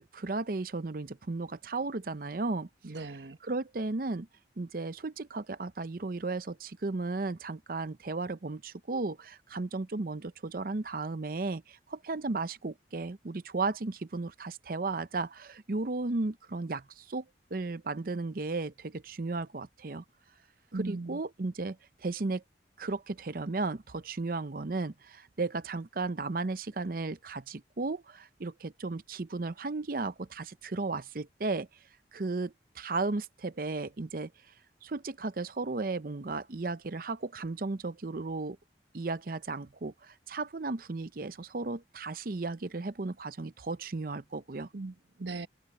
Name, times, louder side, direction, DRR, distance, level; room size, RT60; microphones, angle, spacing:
voice 1, 0.0-2.7 3.4-4.3 4.6-20.0 20.7-22.4 22.8-31.7 32.1-34.3 34.8-38.6 38.9-44.7, right 3 dB, 55° right, 0.7 m, -35 dB
voice 2, 2.8-3.4 20.7-21.2 44.7-45.5, right 3 dB, 85° right, 1.1 m, -38 dB
head